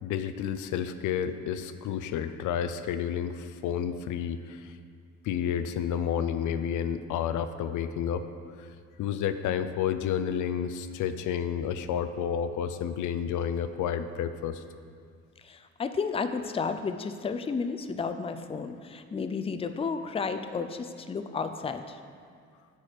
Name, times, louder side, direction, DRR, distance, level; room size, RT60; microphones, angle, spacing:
voice 1, 0.0-4.7 5.2-8.3 8.6-8.7 9.0-14.6, left 8 dB, 80° left, 10 dB, 0.5 m, -30 dB
voice 2, 15.4-22.0, left 5 dB, 20° left, 9 dB, 0.5 m, -32 dB
8.5 x 4.7 x 6.7 m, 2.2 s
cardioid pair, 90°, 30 cm